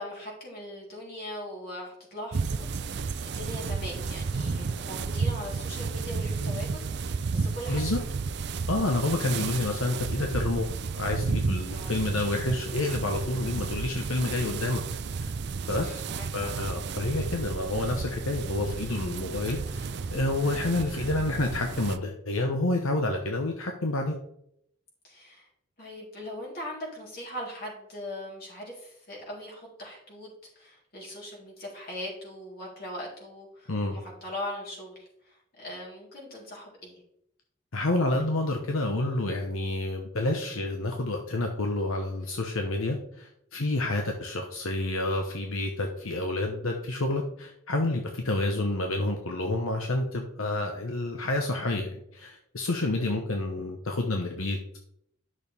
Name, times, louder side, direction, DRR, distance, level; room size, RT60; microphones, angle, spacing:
voice 1, 0.0-7.8 11.7-11.9 15.6-16.5 25.0-25.5 25.8-37.0 53.0-53.1, left 1 dB, 45° left, -4 dB, 3.8 m, -40 dB
sound 1, 2.3-22.0, right 4 dB, 50° right, 0.4 m, -32 dB
voice 2, 7.7-8.0 8.7-10.7 10.9-14.8 15.2-15.3 15.7-16.0 16.3-24.1 33.7-34.0 37.7-54.8, left 2 dB, 80° left, 3 dB, 1.0 m, -29 dB
11.5 x 6.4 x 3.5 m, 0.72 s
head